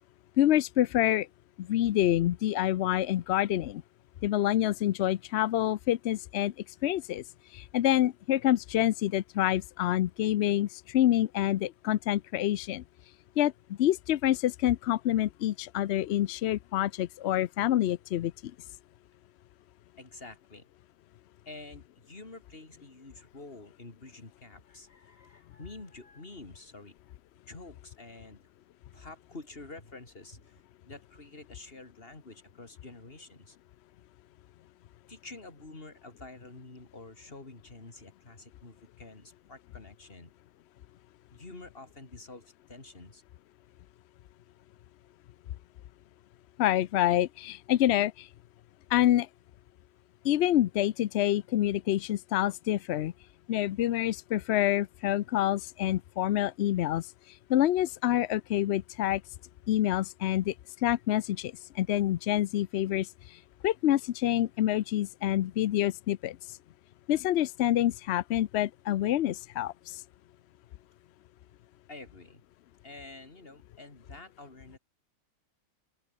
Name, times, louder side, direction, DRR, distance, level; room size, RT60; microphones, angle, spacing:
voice 1, 0.4-1.3 1.6-3.8 4.2-6.5 6.8-7.2 7.5-12.8 13.4-13.5 13.8-18.3 46.6-48.3 48.9-49.3 50.2-53.1 53.5-57.1 57.5-59.2 59.7-60.5 60.8-66.6 67.1-70.0, left 13 dB, 70° left, 0.6 m, -27 dB
voice 2, 20.0-20.7 21.5-26.9 27.5-28.5 28.9-33.6 35.1-40.3 41.3-43.2 71.9-72.4 72.8-74.8, left 2 dB, 40° left, 3.4 m, -48 dB
open air
omnidirectional pair, 1.6 m